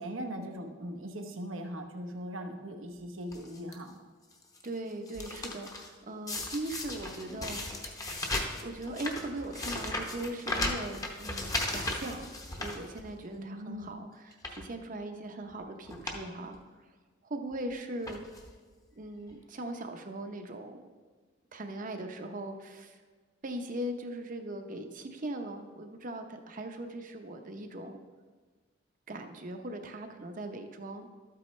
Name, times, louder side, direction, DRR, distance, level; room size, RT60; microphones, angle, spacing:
voice 1, 0.0-4.0 13.4-13.9, equal, 85° right, 5 dB, 1.0 m, -40 dB
sound 1, 3.3-3.7 4.3-4.7 4.9-5.9 6.3-13.4 13.8-13.9 14.3-14.7 15.5-15.6 15.9-16.2 16.5-16.6 17.5-17.7 18.0-18.5 19.3-19.4 19.6-19.7, left 2 dB, 20° left, 0.8 m, -36 dB
voice 2, 4.6-8.0 8.6-12.3 12.6-16.6 17.2-18.2 19.0-20.9 21.5-23.0 23.4-28.0 29.1-31.1, right 1 dB, 45° right, 6 dB, 0.7 m, -39 dB
12.5 x 8.4 x 3.2 m, 1.4 s
head